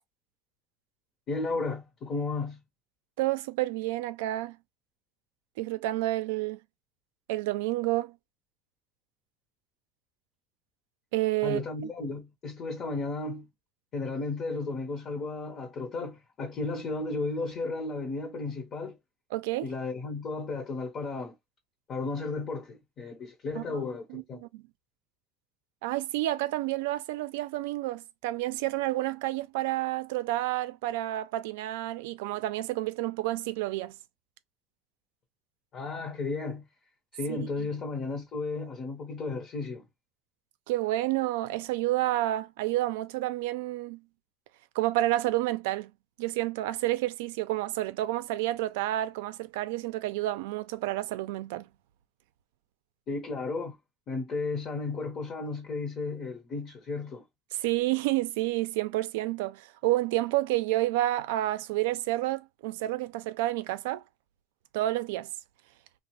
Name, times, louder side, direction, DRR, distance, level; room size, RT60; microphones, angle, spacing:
voice 1, 1.3-2.6 11.4-13.5 13.9-19.0 19.6-21.4 21.9-24.4 35.7-36.7 37.1-39.9 53.1-53.8 54.1-57.2, left 3 dB, 40° left, 0.7 m, -34 dB
voice 2, 3.2-4.6 5.6-6.6 7.3-8.1 11.1-11.6 19.3-19.7 23.6-24.6 25.8-33.9 37.3-37.4 40.7-44.0 44.7-45.9 46.2-51.7 57.6-64.0 64.7-65.3, right 16 dB, 90° right, 0.4 m, -30 dB
2.8 x 2.0 x 2.9 m
cardioid pair, 145°, 0 cm